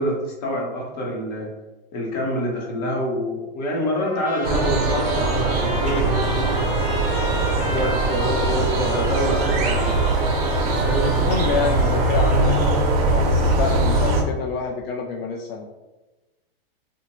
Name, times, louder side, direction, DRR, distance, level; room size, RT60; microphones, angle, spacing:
voice 1, 0.0-1.5 1.9-6.5 7.2-10.0 10.8-11.1, equal, 45° left, -1 dB, 0.9 m, -26 dB
Trumpet, 4.0-12.6, left 1 dB, 20° left, 0.4 m, -33 dB
sound 1, 4.4-14.2, right 2 dB, 40° right, 0.5 m, -21 dB
voice 2, 11.0-12.8 13.1-15.6, left 5 dB, 80° left, 0 dB, 0.5 m, -28 dB
3.0 x 2.1 x 3.0 m, 1.1 s
supercardioid pair, 160°, 30 cm